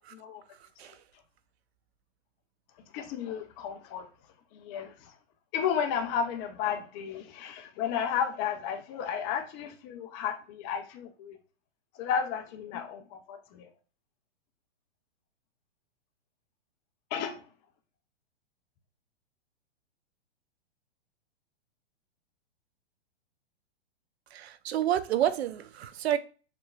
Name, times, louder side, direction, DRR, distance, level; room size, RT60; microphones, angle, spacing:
voice 1, 0.1-0.4 2.9-4.1 4.5-5.1 5.5-11.4 11.9-13.7 17.1-17.4, left 8 dB, 20° left, 6 dB, 0.5 m, -33 dB
voice 2, 24.3-26.2, right 11 dB, 65° right, 13 dB, 0.7 m, -29 dB
6.7 x 3.0 x 2.3 m, 0.36 s
hypercardioid pair, 145°, 34 cm